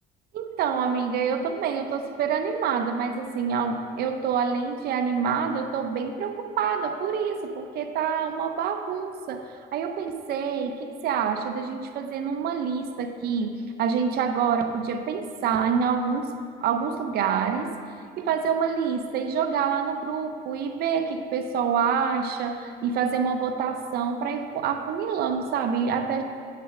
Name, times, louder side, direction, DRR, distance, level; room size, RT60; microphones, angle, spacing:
voice 1, 0.3-17.8 18.2-26.2, right 6 dB, 70° right, 6 dB, 0.7 m, -27 dB
7.5 x 6.8 x 5.9 m, 2.2 s
cardioid pair, 110°, 17 cm